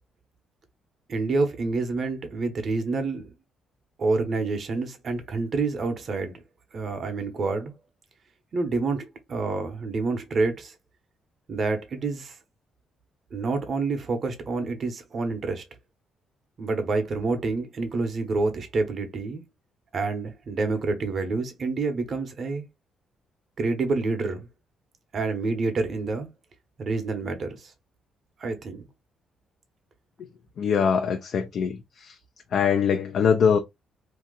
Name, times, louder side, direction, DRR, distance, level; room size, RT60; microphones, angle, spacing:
voice 1, 1.1-3.3 4.0-6.4 6.7-7.7 8.5-10.7 11.5-12.4 13.3-15.6 16.6-19.4 19.9-22.6 23.6-24.5 25.1-26.3 26.8-27.7 28.4-28.9, right 3 dB, 50° right, 1.0 m, -28 dB
voice 2, 30.6-32.2 32.5-33.6, left 7 dB, 65° left, 0.5 m, -23 dB
2.8 x 2.5 x 3.9 m
cardioid pair, 90°, 0 cm